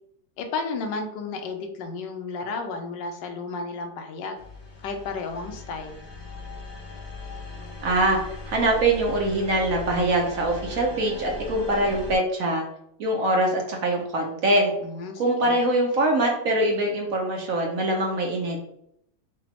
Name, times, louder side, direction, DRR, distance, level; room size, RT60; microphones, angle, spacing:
voice 1, 0.4-4.4 4.8-6.0 14.8-15.6, left 4 dB, 85° left, 5 dB, 1.3 m, -33 dB
sound 1, 4.4-12.2, left 2 dB, 40° left, 0.9 m, -39 dB
voice 2, 7.8-12.6 13.0-14.7 15.2-18.6, right 1 dB, 60° right, 0 dB, 1.0 m, -23 dB
5.1 x 2.3 x 2.8 m, 0.74 s
omnidirectional pair, 1.9 m